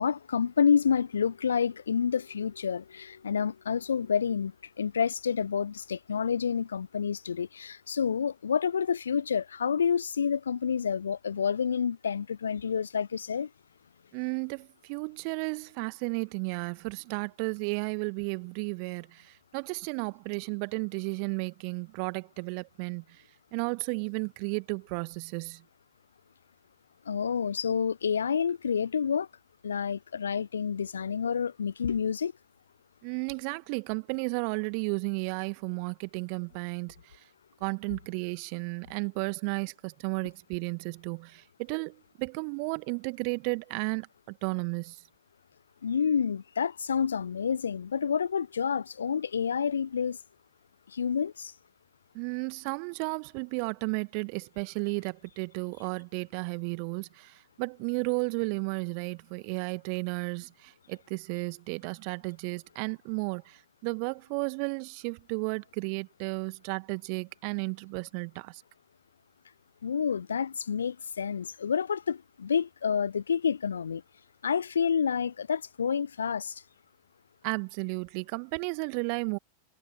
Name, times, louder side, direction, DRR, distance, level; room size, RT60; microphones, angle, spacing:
voice 1, 0.0-13.5 27.1-29.3 29.6-32.3 45.8-50.2 50.9-51.5 69.8-74.0 74.4-76.6, left 7 dB, 70° left, 0.8 m, -29 dB
voice 2, 14.1-23.2 23.5-25.6 33.0-37.2 37.6-45.0 52.1-68.6 77.4-79.4, right 40 dB or more, 45° right, 1.8 m, -33 dB
figure-of-eight pair, 90°, 0 cm